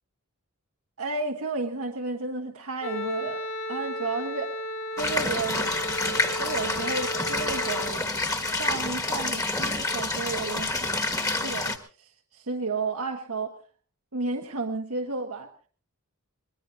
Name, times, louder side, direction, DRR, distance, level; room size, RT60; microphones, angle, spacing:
voice 1, 1.0-3.4 3.7-4.5 5.0-5.8 6.4-11.0 11.4-13.6 14.1-15.5, right 3 dB, 75° right, 3 dB, 1.4 m, -32 dB
Wind instrument woodwind instrument, 2.8-8.0, equal, 65° left, 3.0 m, -34 dB
sound 1, 5.0-11.8, left 2 dB, 15° left, 1.6 m, -28 dB
24.5 x 19.0 x 2.7 m, 0.39 s
head